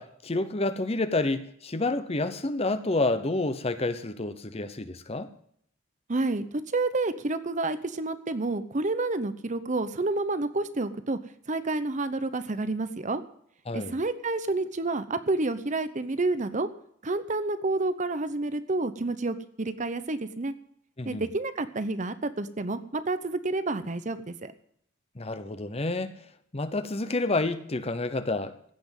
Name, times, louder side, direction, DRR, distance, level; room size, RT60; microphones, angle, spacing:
voice 1, 0.0-5.3 13.7-13.9 21.0-21.2 25.2-26.1 26.5-28.7, left 2 dB, 30° left, 11 dB, 0.8 m, -29 dB
voice 2, 6.1-6.4 6.7-11.2 11.5-13.2 13.7-16.7 17.0-20.5 21.0-24.5, right 2 dB, 35° right, 12 dB, 0.8 m, -29 dB
16.0 x 6.0 x 9.0 m, 0.68 s
head